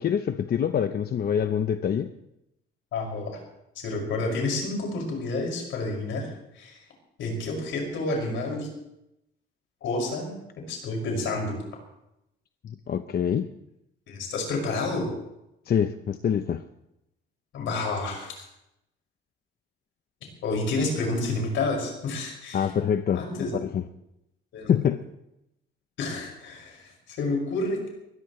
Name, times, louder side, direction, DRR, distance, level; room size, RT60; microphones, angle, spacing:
voice 1, 0.0-2.1 12.6-13.5 15.7-16.6 22.5-23.8 24.7-25.1, left 8 dB, 50° left, 9 dB, 0.8 m, -25 dB
voice 2, 2.9-3.4 3.7-6.8 7.2-8.7 9.8-10.3 10.7-11.6 14.1-15.1 17.5-18.4 20.4-22.7 23.1-23.5 24.5-24.7 26.0-27.9, left 2 dB, 80° left, 0 dB, 6.1 m, -29 dB
22.5 x 17.5 x 3.2 m, 0.85 s
cardioid pair, 90°, 20 cm